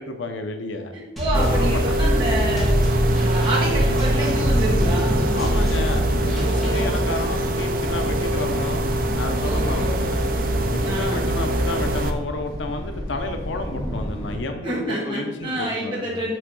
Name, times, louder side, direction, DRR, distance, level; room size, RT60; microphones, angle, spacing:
voice 1, 0.0-0.9 1.2-2.0 5.3-8.8 9.1-10.3 10.7-16.2, left 2 dB, 85° left, 6 dB, 0.6 m, -31 dB
voice 2, 0.9-2.8 3.1-5.3 6.5-7.0 9.4-10.0 10.8-11.3 14.6-16.4, right 1 dB, 25° right, -5 dB, 1.2 m, -28 dB
sound 1, 1.2-6.8, equal, ahead, 1.7 m, -25 dB
Thunder, 1.3-14.4, equal, 20° left, 1.3 m, -31 dB
sound 2, 1.3-12.1, right 1 dB, 50° right, 0.5 m, -23 dB
6.3 x 3.5 x 5.4 m, 1.0 s
head